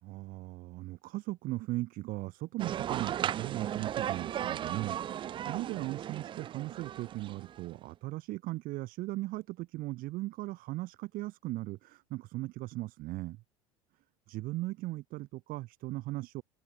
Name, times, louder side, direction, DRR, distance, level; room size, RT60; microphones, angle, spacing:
voice 1, 0.0-13.4 14.3-16.4, right 18 dB, 50° right, 2.6 m, -38 dB
sound 1, 2.6-7.7, right 10 dB, 25° right, 0.4 m, -36 dB
open air
figure-of-eight pair, 75°, 18 cm